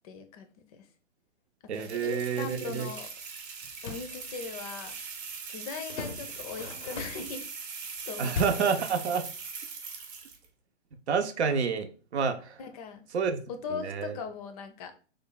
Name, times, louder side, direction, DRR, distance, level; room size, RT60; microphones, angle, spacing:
voice 1, 0.0-0.9 1.7-3.1 3.8-4.9 5.5-7.4 8.1-8.8 12.6-13.0 13.5-14.9, left 6 dB, 35° left, 0.5 m, -39 dB
sound 1, 1.7-10.5, right 5 dB, 25° right, 0.7 m, -41 dB
voice 2, 1.7-2.9 8.2-9.3 11.1-12.6 13.1-13.4 13.7-14.1, right 6 dB, 75° right, 0.7 m, -29 dB
sound 2, 3.6-4.1 5.9-7.4 8.3-8.8, left 3 dB, 80° left, 0.7 m, -37 dB
3.2 x 2.2 x 3.8 m
hypercardioid pair, 125°, 34 cm